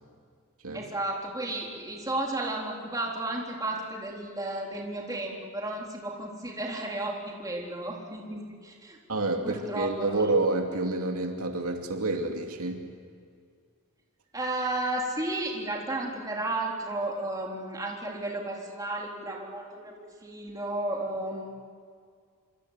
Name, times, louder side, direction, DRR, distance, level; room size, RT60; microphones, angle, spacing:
voice 1, 0.7-9.0 9.4-10.3 14.3-19.9 20.2-21.6, right 2 dB, 15° right, -1 dB, 3.8 m, -33 dB
voice 2, 9.1-12.9, right 2 dB, 75° right, 3 dB, 2.7 m, -28 dB
26.0 x 26.0 x 8.2 m, 2.1 s
head